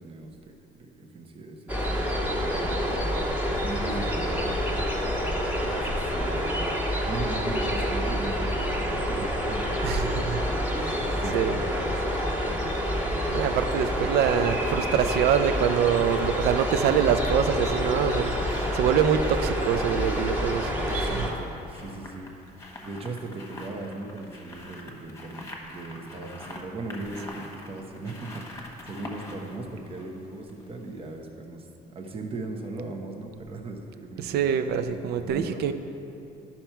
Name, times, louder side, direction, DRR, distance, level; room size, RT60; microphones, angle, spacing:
voice 1, 0.0-3.2 3.6-4.9 5.7-6.5 7.0-10.0 11.1-13.0 20.9-25.4 25.7-34.5 34.9-35.7, right 2 dB, 35° right, 3 dB, 0.9 m, -38 dB
sound 1, 1.7-21.3, equal, 10° right, 1.4 m, -28 dB
voice 2, 9.8-10.4 10.8-11.1 11.3-11.5 13.3-21.1 34.2-35.7, right 8 dB, 70° right, 10 dB, 0.5 m, -25 dB
sound 2, 13.3-14.0 15.3-30.8 31.1-31.2, left 1 dB, 15° left, 1.3 m, -45 dB
10.5 x 5.8 x 4.5 m, 2.8 s
cardioid pair, 110°, 17 cm